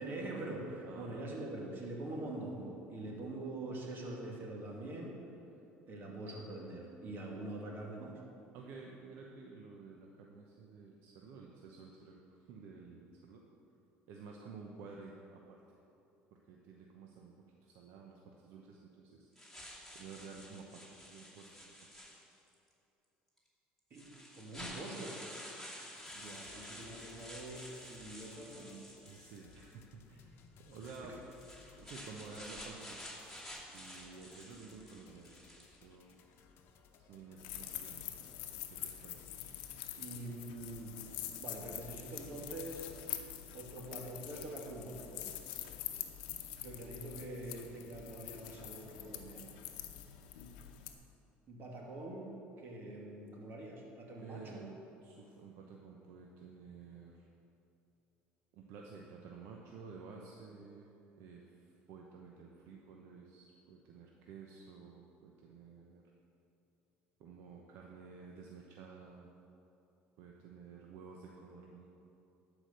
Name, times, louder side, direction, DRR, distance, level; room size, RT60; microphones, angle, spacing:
voice 1, 0.0-5.1 5.9-8.2 23.9-24.1 24.3-25.2 26.1-28.8 31.1-31.2 40.0-40.9 41.4-42.8 43.5-45.3 46.6-49.6 51.5-52.3 52.6-54.6, right 2 dB, 50° right, -1 dB, 2.3 m, -44 dB
voice 2, 0.8-1.2 8.5-13.4 14.1-15.6 16.5-17.3 17.6-19.3 19.9-21.9 29.1-31.2 31.8-33.0 33.7-36.2 37.1-38.1 38.4-39.7 54.2-57.3 58.5-66.0 67.2-69.3 70.2-71.9, right 4 dB, 70° right, 0 dB, 0.9 m, -52 dB
sound 1, 19.4-22.5 23.4-23.5 23.9-29.7 30.6-35.8, equal, 5° left, 2.7 m, -50 dB
sound 2, 26.0-43.1, left 6 dB, 60° left, 0.9 m, -62 dB
sound 3, 37.4-50.9, left 12 dB, 85° left, 0.7 m, -45 dB
11.5 x 5.0 x 6.6 m, 2.8 s
supercardioid pair, 90°, 5 cm